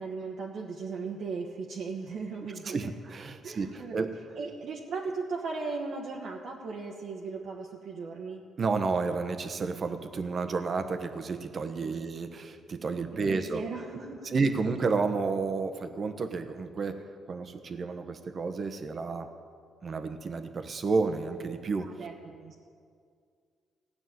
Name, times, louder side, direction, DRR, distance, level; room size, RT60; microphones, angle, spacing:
voice 1, 0.0-2.9 3.4-4.1 4.4-8.4 11.8-12.0 13.3-14.3 21.8-22.6, right 4 dB, 65° right, -2 dB, 1.2 m, -37 dB
voice 2, 2.6-4.1 8.6-13.6 14.3-19.3 19.8-21.9, right 4 dB, 45° right, 8 dB, 1.1 m, -31 dB
16.0 x 6.0 x 9.4 m, 2.2 s
cardioid pair, 90°, 0 cm